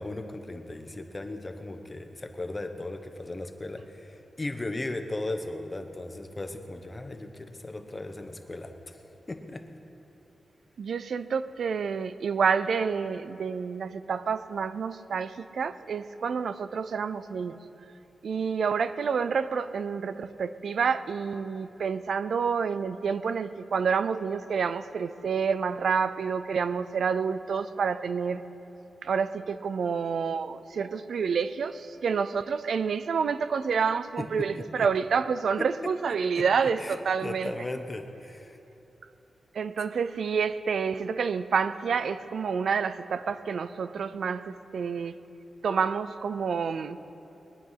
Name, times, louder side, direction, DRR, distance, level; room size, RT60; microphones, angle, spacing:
voice 1, 0.0-9.0 9.3-9.6 34.5-34.9 35.6-35.7 36.3-36.4 36.8-37.0 37.2-38.6, left 2 dB, 25° left, 6 dB, 1.0 m, -37 dB
voice 2, 10.8-17.6 18.2-28.4 29.0-37.5 39.5-45.1 45.6-47.0, right 6 dB, 80° right, 13 dB, 0.5 m, -28 dB
21.5 x 10.0 x 5.7 m, 3.0 s
wide cardioid pair, 145°, 0 cm